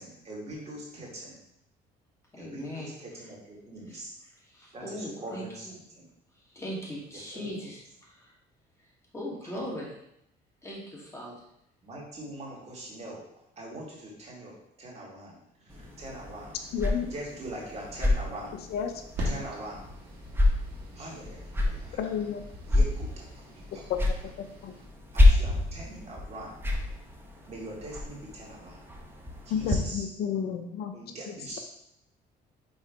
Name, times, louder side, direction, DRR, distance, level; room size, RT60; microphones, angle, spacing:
voice 1, 0.0-1.4 2.4-4.1 4.7-5.7 6.0-6.1 7.3-7.5 9.6-9.7 11.8-13.3 13.6-16.8 17.1-18.5 19.2-19.9 21.0-22.0 22.7-23.4 25.1-26.6 27.5-28.8 29.5-30.1 30.9-31.6, right 1 dB, 40° right, -4 dB, 2.3 m, -42 dB
voice 2, 2.3-2.9 3.9-4.0 4.4-5.8 6.5-8.3 9.1-9.9 10.6-11.3, equal, 15° left, -5 dB, 2.2 m, -39 dB
sound 1, 15.7-29.8, left 2 dB, 15° right, 1.0 m, -29 dB
voice 3, 16.7-17.1 18.7-18.9 21.9-22.4 23.9-24.0 24.4-24.7 29.5-30.9 31.3-31.4, left 8 dB, 70° left, 6 dB, 0.6 m, -31 dB
sound 2, 19.2-24.9, right 2 dB, 75° right, 1.7 m, -44 dB
5.5 x 3.8 x 4.5 m, 0.77 s
cardioid pair, 110°, 17 cm